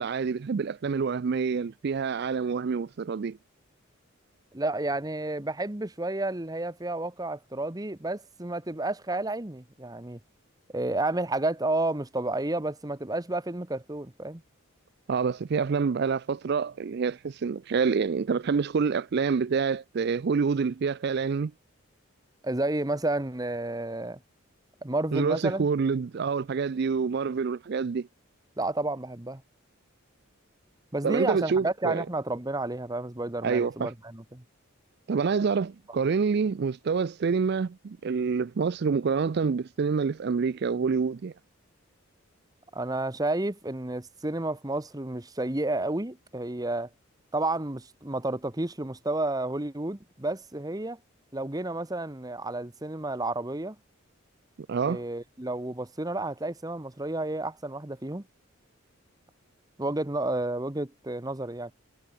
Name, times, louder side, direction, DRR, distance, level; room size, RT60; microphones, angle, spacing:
voice 1, 0.0-3.4 15.1-21.5 25.1-28.1 31.0-32.0 33.4-33.9 35.1-41.3 54.7-55.0, right 5 dB, 50° right, 0.4 m, -27 dB
voice 2, 4.5-10.2 10.7-14.4 22.4-24.2 24.8-25.7 28.6-29.4 30.9-34.4 42.7-46.9 47.3-51.0 51.3-53.8 54.8-58.3 59.8-61.7, right 2 dB, 20° right, 1.1 m, -31 dB
head